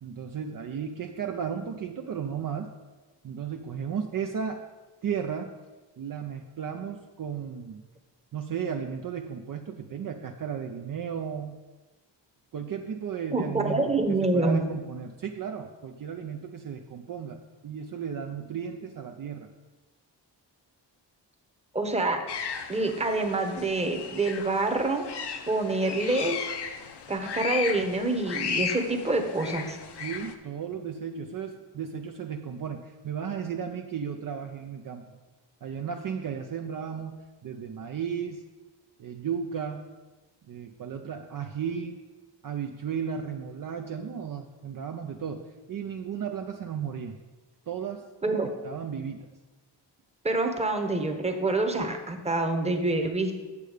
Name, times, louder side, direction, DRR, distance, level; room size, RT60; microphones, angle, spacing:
voice 1, 0.0-2.7 3.2-4.7 5.0-5.5 6.0-7.8 8.3-11.6 12.5-19.5 29.9-35.2 35.6-38.4 39.0-39.9 40.5-42.0 42.4-47.2 47.7-48.0 48.6-49.3, right 7 dB, 50° right, 4 dB, 0.6 m, -34 dB
voice 2, 13.3-14.7 21.7-22.2 22.7-25.1 25.5-26.5 27.1-29.8 48.2-48.5 50.2-53.3, right 2 dB, 15° right, 4 dB, 1.0 m, -26 dB
sound 1, 22.3-30.3, left 6 dB, 65° left, 0.8 m, -35 dB
8.3 x 6.7 x 4.9 m, 1.2 s
wide cardioid pair, 120°, 44 cm